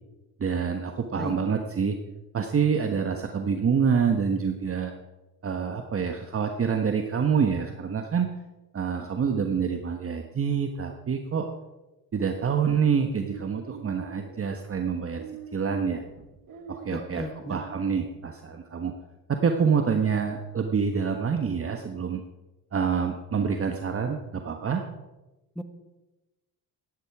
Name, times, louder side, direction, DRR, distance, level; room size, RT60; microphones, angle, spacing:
voice 1, 0.4-2.0 2.3-4.9 5.4-8.3 8.7-11.5 12.1-15.2 15.5-16.0 16.7-18.9 19.3-22.2 22.7-24.8, right 6 dB, 30° right, 5 dB, 1.4 m, -26 dB
sound 1, 13.3-17.9, right 6 dB, 55° right, 2.0 m, -44 dB
voice 2, 16.9-17.6 25.5-25.6, left 1 dB, ahead, 8 dB, 1.7 m, -35 dB
16.0 x 11.0 x 4.8 m, 1.1 s
supercardioid pair, 75°, 42 cm